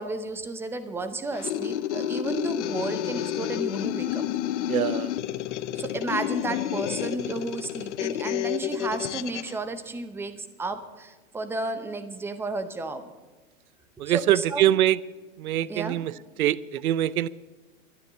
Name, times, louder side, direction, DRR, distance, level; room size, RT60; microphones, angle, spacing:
voice 1, 0.0-4.2 5.7-13.1 14.1-14.7 15.7-16.0, right 3 dB, 5° right, 10 dB, 0.7 m, -33 dB
sound 1, 1.3-9.5, left 11 dB, 55° left, 0.9 m, -30 dB
voice 2, 4.7-5.1 14.0-15.0 15.4-16.1 16.4-17.3, right 12 dB, 85° right, 20 dB, 0.6 m, -23 dB
12.5 x 10.0 x 7.4 m, 1.3 s
hypercardioid pair, 145°, 42 cm